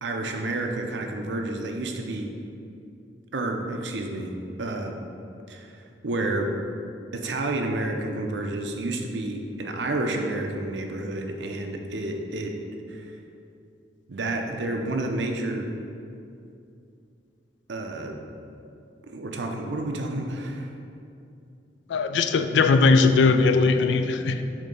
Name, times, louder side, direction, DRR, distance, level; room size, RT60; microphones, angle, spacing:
voice 1, 0.0-2.3 3.3-4.3 4.6-5.0 5.5-6.5 7.1-12.5 12.9-13.1 14.1-15.7 17.7-18.2 19.1-20.7, right 2 dB, 85° right, 3 dB, 0.6 m, -30 dB
voice 2, 21.9-24.4, left 4 dB, 85° left, 9 dB, 0.4 m, -19 dB
7.3 x 2.8 x 5.3 m, 2.6 s
head